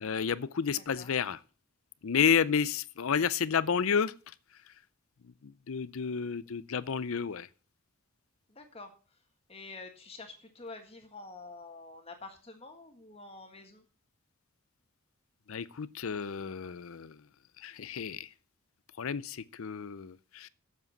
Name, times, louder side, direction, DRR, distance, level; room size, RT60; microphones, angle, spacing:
voice 1, 0.0-1.4 2.0-4.7 5.2-7.5 15.5-17.3 17.6-18.3 19.0-20.5, left 6 dB, 65° left, 0.5 m, -31 dB
voice 2, 8.5-8.9 9.5-13.8, left 3 dB, 25° left, 1.7 m, -47 dB
8.1 x 7.5 x 7.2 m
head